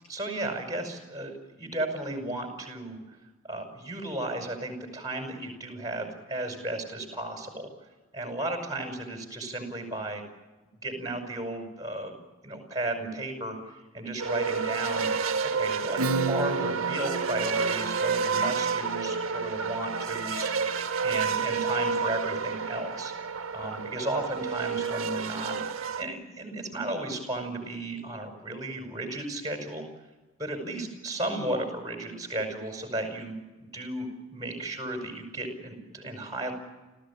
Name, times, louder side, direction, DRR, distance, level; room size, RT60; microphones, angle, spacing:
voice 1, 0.1-3.0 3.5-7.7 8.1-10.2 10.8-12.1 12.4-13.6 13.9-15.1 15.4-20.5 21.0-23.1 23.5-25.6 26.0-29.8 30.4-36.5, right 2 dB, 20° right, 4 dB, 5.5 m, -34 dB
sound 1, 14.2-26.0, right 5 dB, 70° right, 1.7 m, -30 dB
Acoustic guitar / Strum, 16.0-21.3, right 2 dB, 90° right, 0.9 m, -35 dB
30.0 x 15.0 x 8.6 m, 1.2 s
head